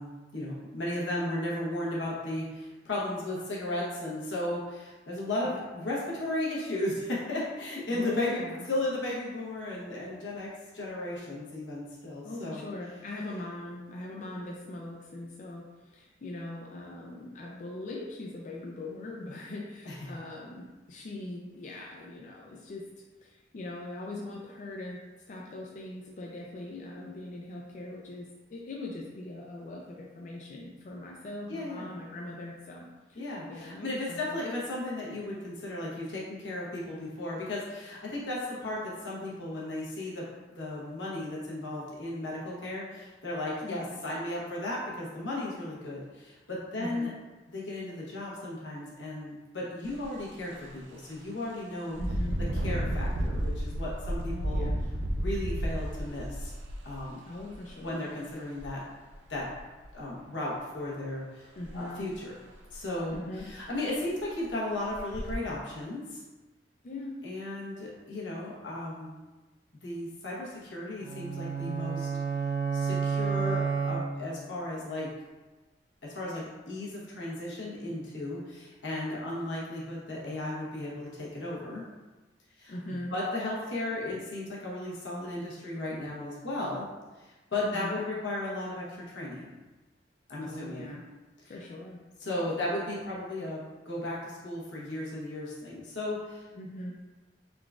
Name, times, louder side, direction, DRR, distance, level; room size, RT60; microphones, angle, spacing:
voice 1, 0.0-10.5 10.7-12.6 19.8-20.1 31.5-31.9 33.1-47.1 47.5-52.0 52.5-54.7 55.1-56.5 56.8-57.3 57.8-58.8 59.3-59.5 59.9-61.5 61.7-62.3 62.7-66.2 67.2-69.1 69.8-72.1 72.7-75.1 76.0-81.8 82.6-82.7 83.1-86.9 87.2-89.5 90.3-90.9 92.2-96.4, left 1 dB, 85° left, -5 dB, 1.0 m, -35 dB
voice 2, 7.9-8.7 12.2-34.4 43.6-44.0 46.8-47.1 52.0-52.4 54.3-54.8 57.3-58.1 61.6-62.1 63.1-63.5 66.8-67.2 82.7-83.1 87.6-88.0 90.4-91.0 91.4-92.0 92.6-92.7 96.6-96.9, left 2 dB, 45° left, -2 dB, 0.4 m, -41 dB
Engine, 49.8-50.0 50.5-50.7 51.9-57.7 58.6-58.7 59.1-59.8 61.6-61.8 62.1-62.2 62.7-62.8 63.1-63.6 64.2-64.3 64.9-65.3, equal, 85° right, 0.4 m, -32 dB
sound 1, 71.0-74.5, right 6 dB, 50° right, 1.0 m, -30 dB
3.7 x 3.5 x 2.4 m, 1.2 s
head